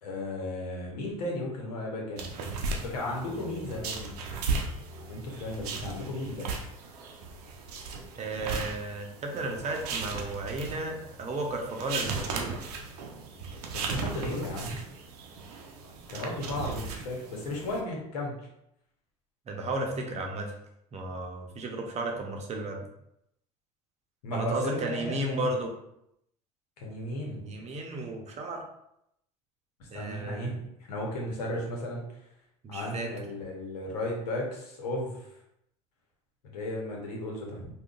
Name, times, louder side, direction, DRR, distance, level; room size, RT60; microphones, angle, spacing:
voice 1, 0.0-2.2 2.8-4.1 5.1-6.5 13.7-14.8 16.1-18.3 24.2-25.5 26.8-27.5 29.9-30.6 30.9-32.0 32.7-35.3 36.4-37.6, left 1 dB, 85° left, -2 dB, 0.9 m, -34 dB
sound 1, 2.2-17.8, right 4 dB, 85° right, 0.5 m, -37 dB
voice 2, 8.2-12.5 19.5-20.5 20.9-22.8 24.3-25.7 27.3-28.6 29.9-30.5 32.6-33.1, right 2 dB, 35° right, 2 dB, 0.7 m, -34 dB
3.6 x 2.3 x 2.4 m, 0.79 s
hypercardioid pair, 80°, 20 cm